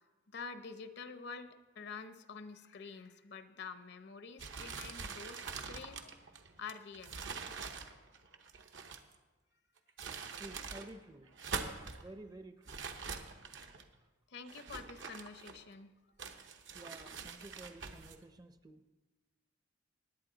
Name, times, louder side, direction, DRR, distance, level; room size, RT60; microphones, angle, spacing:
voice 1, 0.3-6.2 6.6-7.2 14.3-15.9, left 5 dB, 65° left, 10 dB, 0.7 m, -48 dB
sound 1, 4.4-9.2 9.8-10.9 11.3-12.0 12.7-13.9 14.5-15.8 16.2-18.2, right 5 dB, 70° right, 0.9 m, -44 dB
voice 2, 10.4-11.3 12.0-12.8 16.7-18.9, right 1 dB, 20° right, 10 dB, 0.5 m, -52 dB
19.5 x 8.7 x 3.9 m, 1.2 s
head